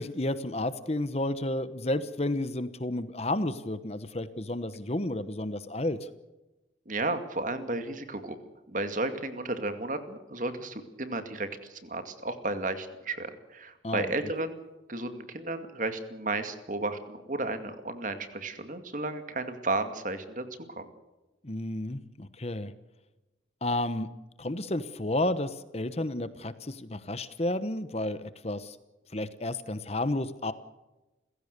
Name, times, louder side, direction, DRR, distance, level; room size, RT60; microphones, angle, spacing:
voice 1, 0.0-6.0 13.8-14.1 21.4-22.7 23.6-24.1 24.4-28.8 29.1-30.5, left 1 dB, 35° left, 13 dB, 1.0 m, -31 dB
voice 2, 6.9-8.4 8.7-14.6 14.9-20.9, right 2 dB, 45° right, 8 dB, 2.3 m, -33 dB
29.5 x 16.5 x 6.8 m, 1.0 s
head